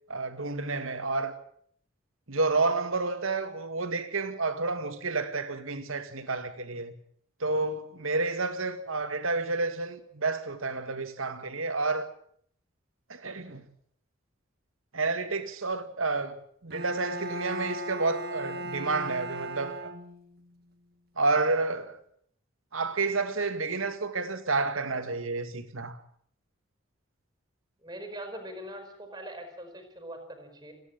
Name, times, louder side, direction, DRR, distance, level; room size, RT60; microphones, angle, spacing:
voice 1, 0.1-1.4 2.3-7.0 7.4-12.1 13.1-13.6 14.9-16.4 16.6-19.9 21.2-22.0 22.7-26.0, right 3 dB, 85° right, 2.2 m, -30 dB
Bowed string instrument, 16.7-20.4, right 1 dB, 50° right, 1.7 m, -37 dB
voice 2, 27.8-30.7, right 1 dB, 20° right, 4.8 m, -42 dB
30.0 x 10.5 x 8.7 m
head